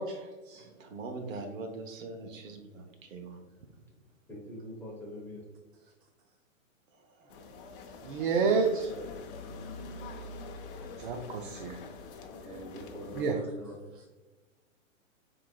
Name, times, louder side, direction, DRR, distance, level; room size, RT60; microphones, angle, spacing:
voice 1, 0.0-0.7 8.0-8.9 10.8-11.8 13.2-13.4, right 4 dB, 40° right, 3 dB, 0.4 m, -30 dB
voice 2, 0.5-3.4 6.9-7.4, right 3 dB, 75° right, 4 dB, 1.1 m, -42 dB
voice 3, 4.3-5.4 8.9-9.2 10.1-10.3 12.0-13.8, left 1 dB, 5° left, -5 dB, 0.9 m, -45 dB
sound 1, 7.3-13.3, left 3 dB, 40° left, 0.6 m, -45 dB
6.9 x 3.0 x 2.2 m, 1.2 s
hypercardioid pair, 140°, 40 cm